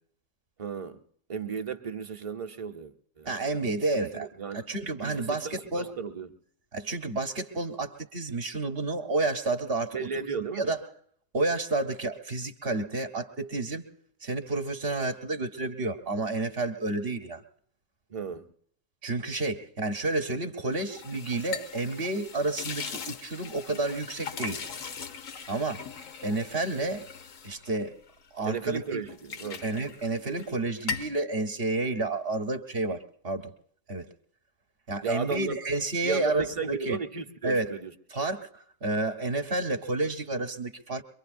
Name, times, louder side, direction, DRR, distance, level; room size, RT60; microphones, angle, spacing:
voice 1, 0.6-1.0 1.3-3.3 3.9-4.7 5.0-6.3 9.9-10.7 18.1-18.5 28.5-29.6 35.0-35.6 36.0-37.9, right 5 dB, 35° right, 0.6 m, -35 dB
voice 2, 3.3-4.3 4.5-5.9 6.7-10.1 10.5-10.8 11.3-13.8 14.2-17.4 19.0-24.6 25.5-25.8 26.2-27.1 27.4-27.9 28.3-28.8 29.6-33.5 33.9-34.1 34.9-37.0 37.4-37.8 38.1-41.0, right 2 dB, 50° right, 1.1 m, -30 dB
sound 1, 20.7-28.5 28.9-30.5 30.8-31.2, left 6 dB, 85° left, 1.3 m, -40 dB
23.5 x 23.5 x 2.5 m
omnidirectional pair, 1.3 m